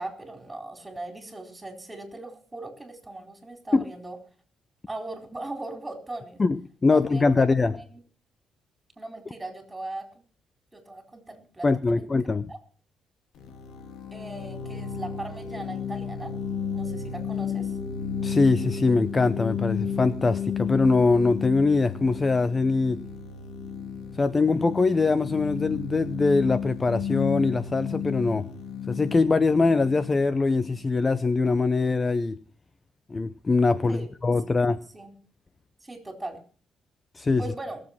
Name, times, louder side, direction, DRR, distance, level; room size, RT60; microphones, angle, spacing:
voice 1, 0.0-4.2 4.9-6.4 6.9-7.5 7.7-7.8 9.0-10.1 10.7-12.1 12.5-12.6 14.1-16.3 16.7-17.7 33.9-34.1 34.9-35.1 35.8-36.4 37.4-37.8, right 2 dB, 15° right, 5 dB, 4.2 m, -39 dB
voice 2, 6.4-7.8 11.6-12.5 18.2-23.0 24.2-28.5 28.9-32.4 33.1-34.8 37.2-37.4, left 3 dB, 30° left, 14 dB, 0.7 m, -22 dB
sound 1, 13.4-31.0, left 6 dB, 80° left, 2.4 m, -33 dB
20.0 x 7.6 x 5.9 m, 0.43 s
cardioid pair, 90°, 0 cm